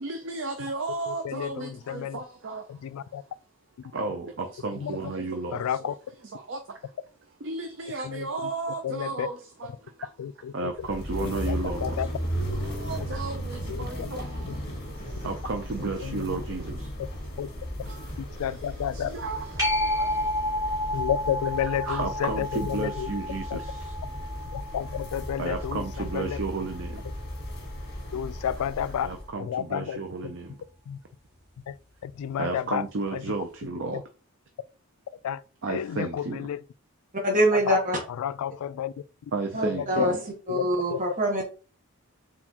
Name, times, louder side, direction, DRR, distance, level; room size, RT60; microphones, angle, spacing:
voice 1, 0.0-2.6 3.9-4.2 4.6-5.6 6.5-6.6 7.5-9.3 10.5-11.8 12.9-14.2 15.2-16.6 19.1-19.4 21.9-23.4 25.4-26.8 29.0-29.4 29.7-30.3 32.4-34.0 35.6-36.4 39.3-40.1, right 3 dB, 55° right, 0.5 m, -32 dB
voice 2, 1.1-2.2 2.7-3.2 4.8-4.9 5.5-5.9 8.0-8.5 8.8-9.3 10.2-10.5 11.2-12.1 13.7-14.1 14.5-14.6 16.0-16.4 17.4-17.5 18.2-19.1 20.9-23.1 23.5-23.6 24.5-26.4 28.1-30.3 30.9-31.0 31.7-31.8 32.0-32.8 33.1-33.2 33.9-34.0 35.2-35.4 35.7-36.6 37.5-37.8 38.2-38.9 39.2-39.3 39.7-40.1 40.5-41.0, left 9 dB, 85° left, 0.3 m, -31 dB
sound 1, 10.8-29.3, equal, 45° left, 1.6 m, -36 dB
sound 2, 12.4-12.6 13.8-14.0 15.2-15.4 16.7-16.9 18.1-18.3 19.5-19.7 20.9-21.1, equal, 25° left, 1.7 m, -42 dB
sound 3, 19.6-26.7 32.3-32.4, left 1 dB, 15° right, 2.4 m, -31 dB
voice 3, 37.1-38.0 39.5-40.2 40.5-41.4, right 1 dB, 35° right, 1.1 m, -24 dB
4.2 x 3.9 x 2.9 m
head